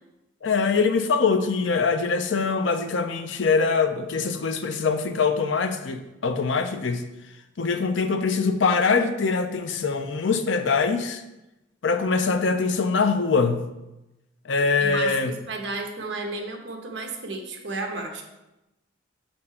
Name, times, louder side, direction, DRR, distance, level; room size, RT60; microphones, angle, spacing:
voice 1, 0.4-7.0 7.6-11.2 11.8-13.7 14.5-15.3, left 4 dB, 65° left, 8 dB, 0.5 m, -23 dB
voice 2, 14.8-18.2, right 2 dB, 60° right, 2 dB, 1.1 m, -33 dB
6.4 x 4.4 x 4.2 m, 0.96 s
head